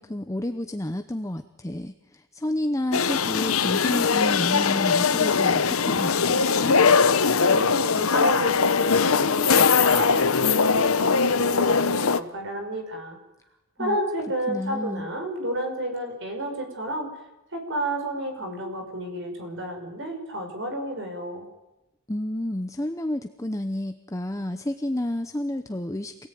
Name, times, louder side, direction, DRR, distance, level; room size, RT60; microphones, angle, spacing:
voice 1, 0.0-6.8 13.8-14.0 14.5-15.1 22.1-26.3, left 1 dB, 15° left, 8 dB, 0.8 m, -30 dB
sound 1, 2.9-12.2, left 5 dB, 75° left, 0.9 m, -21 dB
voice 2, 7.4-13.2 13.8-17.1 17.5-21.5, right 1 dB, 60° right, 5 dB, 5.7 m, -31 dB
27.0 x 17.5 x 9.3 m, 0.95 s
head